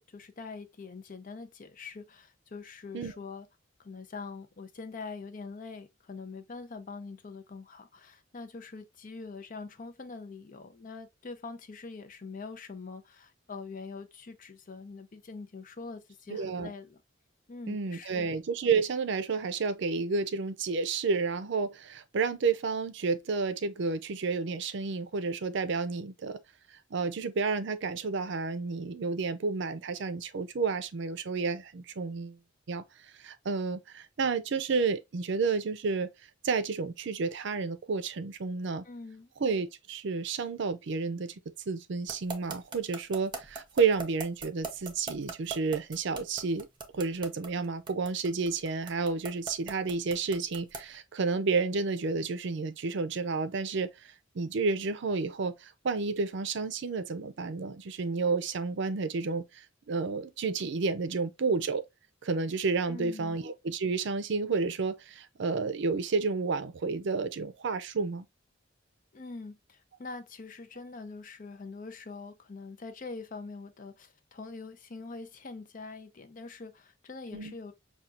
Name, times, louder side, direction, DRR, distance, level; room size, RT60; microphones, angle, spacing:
voice 1, 0.0-3.5 3.8-17.0 17.5-18.3 38.8-39.3 62.9-63.4 69.1-77.7, left 4 dB, 45° left, 0.5 m, -44 dB
voice 2, 16.3-16.7 17.7-26.4 26.9-32.4 32.7-32.8 33.2-36.1 36.4-38.8 39.4-41.3 41.7-46.7 46.9-61.8 62.2-68.3 77.3-77.5, right 4 dB, 65° right, 0.5 m, -31 dB
sound 1, 42.1-50.9, right 4 dB, 25° right, 0.7 m, -39 dB
5.7 x 2.3 x 2.4 m
head